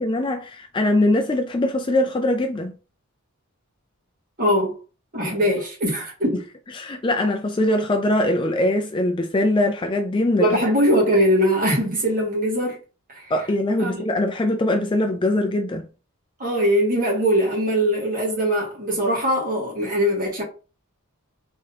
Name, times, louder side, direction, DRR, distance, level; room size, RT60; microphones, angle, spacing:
voice 1, 0.0-2.7 5.2-5.4 6.7-10.5 13.3-15.8, left 1 dB, 20° left, 0.4 m, -22 dB
voice 2, 4.4-4.8 5.1-6.4 10.4-12.8 13.1-13.2 13.8-14.0 16.4-20.4, equal, 40° right, 1.8 m, -21 dB
3.6 x 3.6 x 2.7 m
head